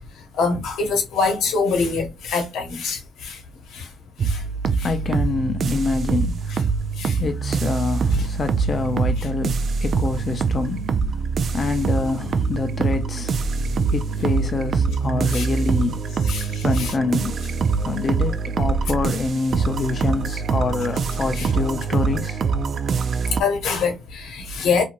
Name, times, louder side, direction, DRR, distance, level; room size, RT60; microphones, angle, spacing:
voice 1, 0.4-3.4 3.7-3.9 4.2-4.4 4.8-4.9 6.5-6.6 7.0-7.2 9.2-9.3 15.3-15.5 16.2-16.9 21.4-21.5 23.4-24.8, left 4 dB, 85° left, 0.8 m, -24 dB
sound 1, 4.2-23.4, right 5 dB, 55° right, 0.3 m, -24 dB
voice 2, 4.8-6.5 7.2-10.9 11.5-13.4 13.9-16.0 16.6-17.3 17.8-22.4, left 4 dB, 40° left, 0.4 m, -26 dB
2.8 x 2.5 x 2.5 m
cardioid pair, 90°, 0 cm